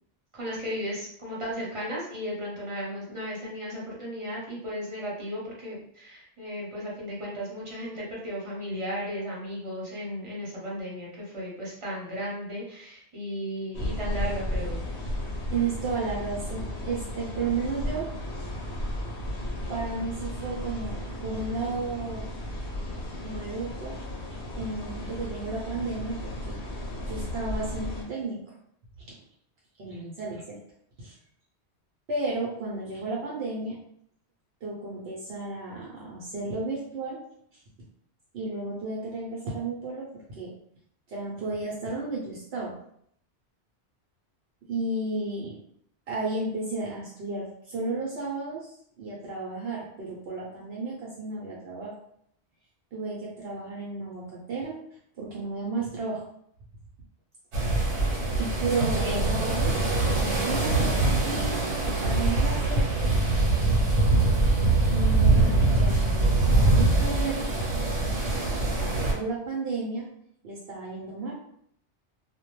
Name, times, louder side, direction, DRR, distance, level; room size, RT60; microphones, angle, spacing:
voice 1, 0.3-14.8 58.7-59.2, equal, 30° right, -6 dB, 0.9 m, -35 dB
sound 1, 13.7-28.0, left 1 dB, 75° left, 1.0 m, -34 dB
voice 2, 15.5-18.1 19.7-22.3 23.2-24.0 24.6-26.6 27.1-28.4 29.8-30.6 31.0-31.1 32.1-33.8 34.6-37.2 38.3-40.5 41.1-42.8 44.7-45.6 46.1-48.7 49.0-51.9 52.9-54.8 55.2-56.2 58.4-59.8 60.1-61.0 61.2-61.6 62.0-63.2 64.9-67.5 69.1-70.1 70.4-71.3, right 3 dB, 70° right, -4 dB, 0.8 m, -33 dB
sound 2, 57.5-69.1, right 2 dB, 85° right, 1.0 m, -23 dB
2.2 x 2.1 x 3.0 m, 0.67 s
omnidirectional pair, 1.1 m